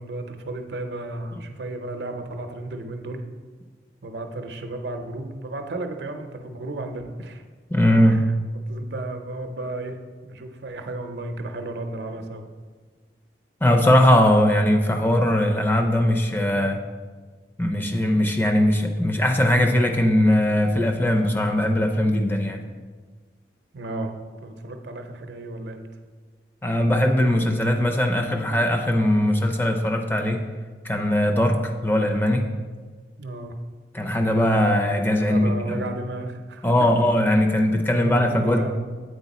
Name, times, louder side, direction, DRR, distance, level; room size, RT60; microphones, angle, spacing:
voice 1, 0.0-3.2 4.0-7.4 8.0-8.3 8.7-10.0 10.2-12.5 23.7-24.2 24.4-25.9 33.2-33.6 35.3-36.7 37.9-38.8, right 2 dB, 70° right, 6 dB, 0.6 m, -33 dB
voice 2, 7.7-8.2 13.6-16.8 17.6-22.6 26.6-30.4 30.8-32.4 33.9-35.9 36.6-38.7, left 1 dB, 10° left, 3 dB, 0.4 m, -20 dB
8.1 x 4.4 x 4.1 m, 1.5 s
head